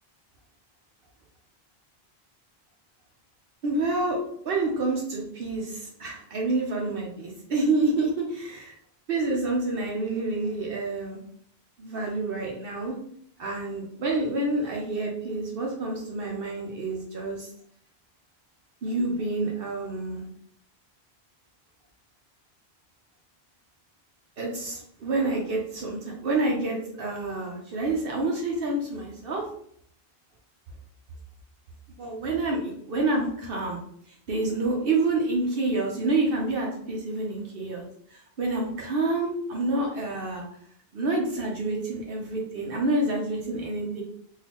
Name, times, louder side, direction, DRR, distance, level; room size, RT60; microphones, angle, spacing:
voice 1, 3.6-4.2 4.4-8.7 9.1-11.2 11.8-13.0 13.4-17.5 18.8-20.3 24.4-29.4 32.0-33.8 34.1-37.8 38.1-40.4 40.9-44.0, right 2 dB, 65° right, -1 dB, 0.9 m, -28 dB
3.7 x 2.3 x 2.9 m, 0.67 s
omnidirectional pair, 1.1 m